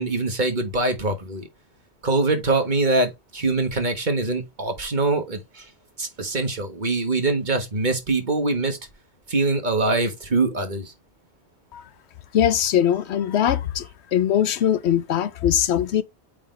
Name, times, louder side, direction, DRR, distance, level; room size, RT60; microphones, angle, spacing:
voice 1, 0.0-1.5 2.0-5.7 6.0-8.8 9.3-10.9, right 3 dB, 45° right, 1.6 m, -23 dB
voice 2, 12.3-13.8 14.1-16.0, left 10 dB, 80° left, 0.9 m, -21 dB
8.3 x 4.0 x 3.3 m
omnidirectional pair, 1.1 m